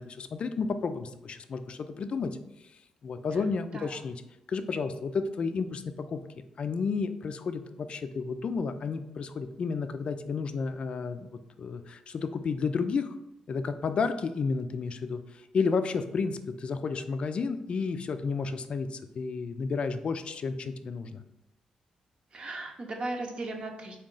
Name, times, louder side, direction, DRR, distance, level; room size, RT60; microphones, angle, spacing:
voice 1, 0.0-2.3 3.0-4.1 4.5-5.8 6.1-6.2 6.6-13.2 13.5-15.2 15.5-21.2, left 5 dB, 55° left, 10 dB, 0.3 m, -31 dB
voice 2, 22.3-24.0, right 2 dB, 50° right, 3 dB, 0.7 m, -37 dB
3.6 x 2.3 x 3.7 m, 0.93 s
cardioid pair, 75°, 2 cm